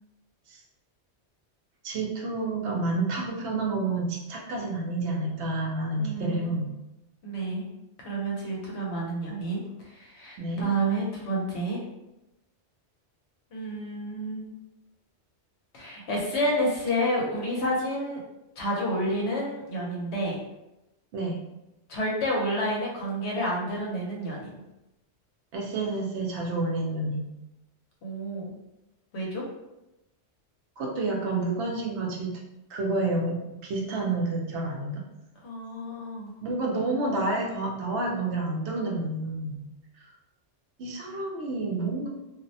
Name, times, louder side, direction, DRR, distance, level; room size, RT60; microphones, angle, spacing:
voice 1, 1.8-6.7 10.4-10.7 21.1-21.4 25.5-27.2 30.8-32.4 32.7-35.0 36.4-39.7 40.8-42.1, right 2 dB, 75° right, -1 dB, 0.9 m, -29 dB
voice 2, 6.0-6.6 7.2-7.6 8.0-11.8 13.5-14.5 15.7-18.2 18.6-20.4 21.9-24.5 28.0-28.6 29.1-29.4 35.4-36.3, right 1 dB, 70° left, -3 dB, 1.0 m, -30 dB
2.5 x 2.0 x 2.6 m, 0.93 s
omnidirectional pair, 1.2 m